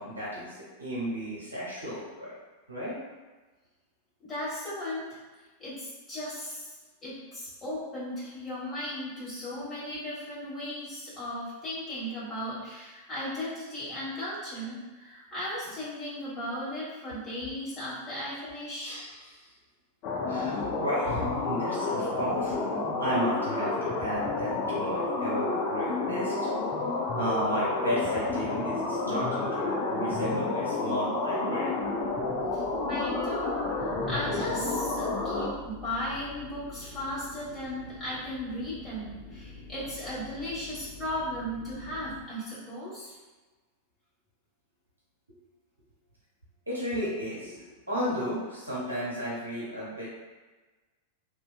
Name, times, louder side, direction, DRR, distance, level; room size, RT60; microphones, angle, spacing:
voice 1, 0.0-2.3 2.7-3.0 18.8-19.4 20.3-26.3 27.2-31.8 46.7-50.1, equal, 80° right, -8 dB, 0.9 m, -33 dB
voice 2, 4.3-5.2 5.6-6.7 7.0-18.9 32.5-43.1, left 1 dB, 20° left, -9 dB, 1.4 m, -36 dB
sound 1, 20.0-35.5, left 3 dB, 40° left, 0.4 m, -30 dB
sound 2, 31.8-42.3, left 2 dB, 5° left, 1.2 m, -46 dB
2.6 x 2.2 x 2.3 m, 1.3 s
figure-of-eight pair, 90°, 0 cm